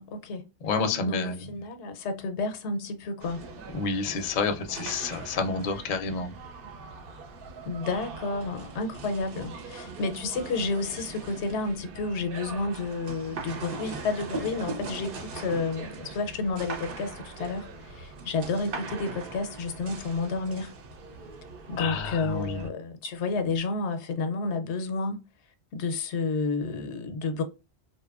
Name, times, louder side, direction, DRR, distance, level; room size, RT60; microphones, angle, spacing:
voice 1, 0.0-0.4 1.1-3.4 7.7-20.7 21.7-25.2 25.7-27.4, left 3 dB, 85° left, 0.9 m, -31 dB
voice 2, 0.6-1.4 3.7-6.3 21.8-22.6, left 4 dB, 55° left, 0.5 m, -29 dB
sound 1, 3.2-22.7, right 4 dB, 60° right, 0.7 m, -41 dB
2.7 x 2.2 x 2.3 m
omnidirectional pair, 1.1 m